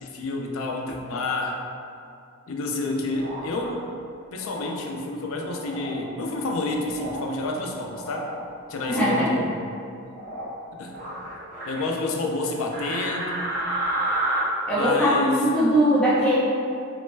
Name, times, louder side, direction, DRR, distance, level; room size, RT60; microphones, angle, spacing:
voice 1, 0.0-1.6 2.5-3.8 4.3-8.3 8.7-9.6 10.8-11.0 11.7-13.6 14.7-15.4, left 2 dB, 60° left, 1 dB, 0.4 m, -29 dB
sound 1, 3.1-3.7 4.4-4.7 5.5-6.0 6.9-7.3 7.7-8.3 8.7-9.1 10.1-10.5 10.9-11.8 12.7-14.4, right 1 dB, 40° right, 1.4 m, -31 dB
voice 2, 8.9-9.3 14.7-16.4, equal, 5° left, -11 dB, 0.7 m, -20 dB
3.0 x 2.1 x 3.2 m, 2.4 s
head